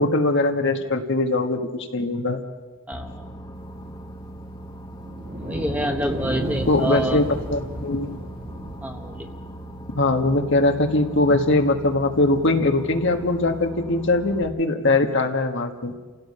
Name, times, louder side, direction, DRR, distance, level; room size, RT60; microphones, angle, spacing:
voice 1, 0.0-2.4 6.7-8.2 9.9-15.9, left 2 dB, 60° left, 5 dB, 1.6 m, -21 dB
Boat Water vehicle, 2.9-14.4, right 1 dB, 20° left, 1.2 m, -39 dB
voice 2, 2.9-3.2 5.4-7.2 8.8-9.3, equal, 5° right, 4 dB, 1.3 m, -28 dB
sound 1, 4.9-11.3 11.9-12.0 13.5-13.6, right 1 dB, 40° right, 2.8 m, -33 dB
28.5 x 17.0 x 5.6 m, 1.3 s
head